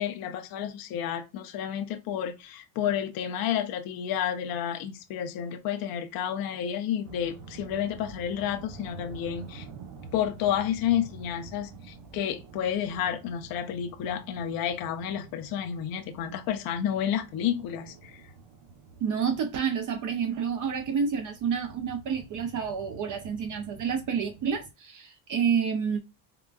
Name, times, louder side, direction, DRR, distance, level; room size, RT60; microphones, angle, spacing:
voice 1, 0.0-9.7 10.1-18.2, left 9 dB, 55° left, 0.5 m, -30 dB
sound 1, 7.0-24.7, right 4 dB, 75° right, 0.8 m, -48 dB
voice 2, 19.0-26.0, right 6 dB, 45° right, 0.5 m, -29 dB
3.7 x 2.1 x 2.3 m
cardioid pair, 130°, 44 cm